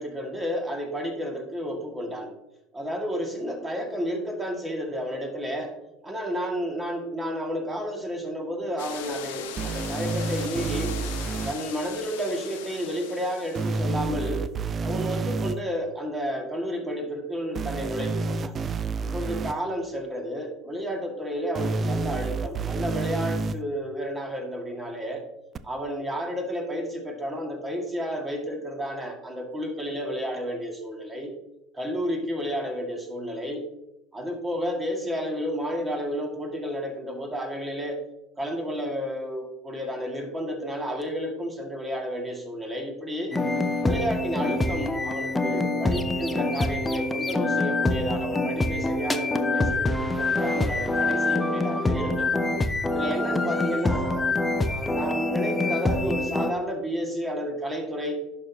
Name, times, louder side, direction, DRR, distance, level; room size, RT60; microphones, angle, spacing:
voice 1, 0.0-2.3 2.7-5.7 6.0-11.0 11.4-14.5 14.8-18.5 19.0-25.2 25.6-31.3 31.7-33.6 34.1-38.0 38.4-43.3 43.8-52.4 52.9-54.2 54.6-58.2, equal, 15° right, 2 dB, 2.0 m, -31 dB
sound 1, 8.8-14.0, left 8 dB, 70° left, 0.9 m, -39 dB
sound 2, 9.6-11.5 13.6-15.6 17.6-19.5 21.6-23.6 25.6-25.7, right 4 dB, 35° right, 0.4 m, -29 dB
sound 3, 43.3-56.5, left 2 dB, 15° left, 0.7 m, -25 dB
11.0 x 6.0 x 2.8 m, 0.90 s
figure-of-eight pair, 70°, 0 cm